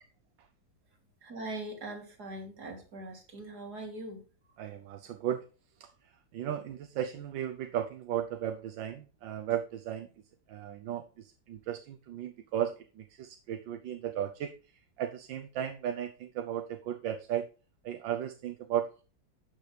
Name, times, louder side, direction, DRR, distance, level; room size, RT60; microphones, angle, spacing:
voice 1, 1.2-4.2, right 2 dB, 55° right, 1 dB, 3.5 m, -41 dB
voice 2, 4.6-5.5 5.8-10.1 10.5-17.5 17.8-19.0, right 10 dB, 80° right, 6 dB, 1.5 m, -35 dB
12.5 x 8.3 x 3.4 m, 0.35 s
omnidirectional pair, 2.0 m